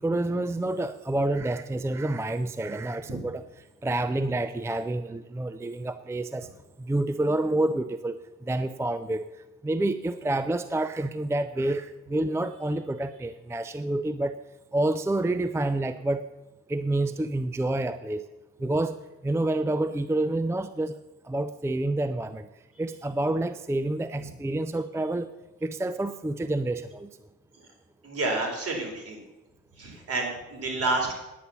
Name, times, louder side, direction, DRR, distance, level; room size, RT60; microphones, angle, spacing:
voice 1, 0.0-3.4 3.8-6.5 6.8-9.3 9.6-14.4 14.7-16.3 16.7-18.3 18.6-19.0 19.2-21.0 21.2-22.5 22.8-25.3 25.6-27.1, right 2 dB, 10° right, 12 dB, 0.5 m, -28 dB
voice 2, 28.0-29.2 29.8-31.1, right 2 dB, 50° right, 1 dB, 4.3 m, -29 dB
10.0 x 9.3 x 7.0 m, 1.0 s
cardioid pair, 90°, 30 cm